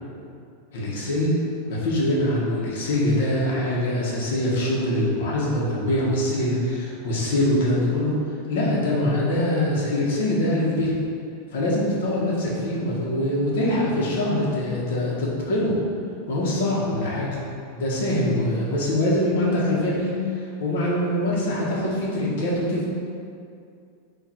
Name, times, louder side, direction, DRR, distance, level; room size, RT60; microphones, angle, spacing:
voice 1, 0.7-1.3 1.7-8.1 8.5-10.9 11.5-15.7 16.3-17.4 17.7-20.1 20.3-22.9, left 1 dB, 65° left, -5 dB, 1.1 m, -23 dB
4.6 x 2.6 x 4.3 m, 2.4 s
supercardioid pair, 170°, 0 cm